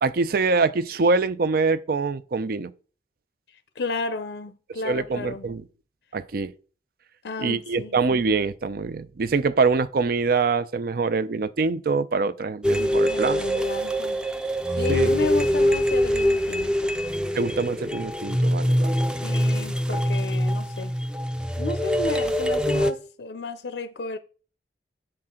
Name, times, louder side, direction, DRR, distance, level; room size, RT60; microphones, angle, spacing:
voice 1, 0.0-2.7 4.8-5.6 6.1-6.5 7.4-13.7 14.9-15.1 17.4-19.0 19.9-20.0, right 4 dB, 55° right, 0.5 m, -24 dB
voice 2, 3.8-5.5 7.2-8.0 13.1-14.2 14.7-16.9 19.2-20.9 21.6-24.2, left 4 dB, 70° left, 0.5 m, -32 dB
sound 1, 12.6-22.9, equal, 5° right, 0.5 m, -24 dB
7.7 x 5.9 x 3.7 m
head